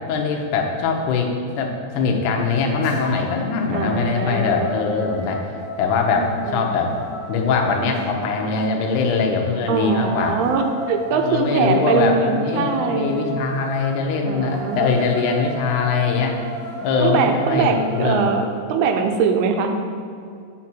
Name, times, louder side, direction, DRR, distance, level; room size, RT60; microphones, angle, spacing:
voice 1, 0.1-5.5 5.8-6.9 7.3-10.4 11.1-16.4 16.8-18.3, left 4 dB, 80° left, 1 dB, 1.8 m, -22 dB
sound 1, 2.8-3.4 3.8-8.0 9.5-18.1, left 2 dB, 40° left, 2.0 m, -34 dB
voice 2, 3.7-4.8 6.1-6.7 9.7-13.1 14.2-14.9 17.0-19.7, right 5 dB, 80° right, 5 dB, 2.6 m, -22 dB
7.3 x 4.3 x 6.0 m, 2.4 s
omnidirectional pair, 4.5 m